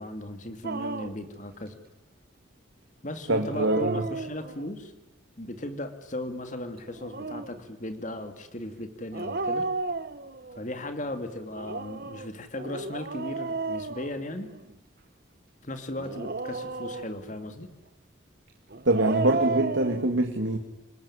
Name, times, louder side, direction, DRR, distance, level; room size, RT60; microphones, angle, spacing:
voice 1, 0.0-1.7 3.0-4.9 5.4-9.7 10.5-14.5 15.6-17.7, left 1 dB, 40° left, 8 dB, 2.6 m, -37 dB
Dog, 0.6-1.3 3.4-4.7 6.8-7.6 9.1-10.6 11.5-14.7 16.0-17.4 18.7-20.0, right 3 dB, 50° right, 1.0 m, -33 dB
voice 2, 3.3-4.0 18.8-20.6, right 1 dB, 75° right, 4 dB, 2.2 m, -24 dB
27.5 x 20.5 x 9.9 m, 1.0 s
head